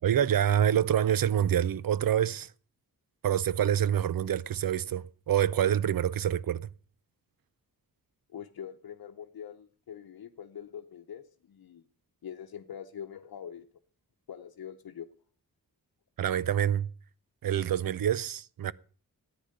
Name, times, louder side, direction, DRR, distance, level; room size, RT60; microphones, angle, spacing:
voice 1, 0.0-2.5 3.2-6.7 16.2-16.9 17.4-18.7, right 10 dB, 70° right, 0.6 m, -26 dB
voice 2, 8.3-11.8 12.2-13.7 14.3-15.1, left 8 dB, 80° left, 0.9 m, -44 dB
14.0 x 9.6 x 6.6 m
wide cardioid pair, 165°, 36 cm